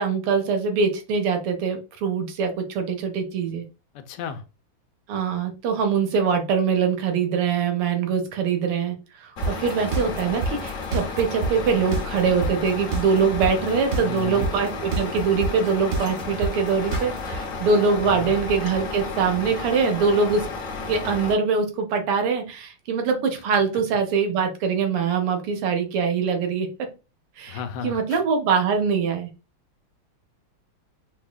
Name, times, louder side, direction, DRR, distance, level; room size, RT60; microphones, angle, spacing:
voice 1, 0.0-3.6 5.1-20.5 20.9-26.7 27.4-29.3, right 5 dB, 90° right, 5 dB, 1.8 m, -23 dB
voice 2, 3.9-4.4 13.9-14.5 18.0-18.4 27.5-28.2, left 7 dB, 80° left, 8 dB, 1.4 m, -34 dB
Truck, 9.4-21.4, left 4 dB, 55° left, 0.9 m, -33 dB
sound 1, 9.4-17.4, right 3 dB, 65° right, 1.1 m, -26 dB
5.3 x 2.3 x 2.2 m, 0.30 s
omnidirectional pair, 2.4 m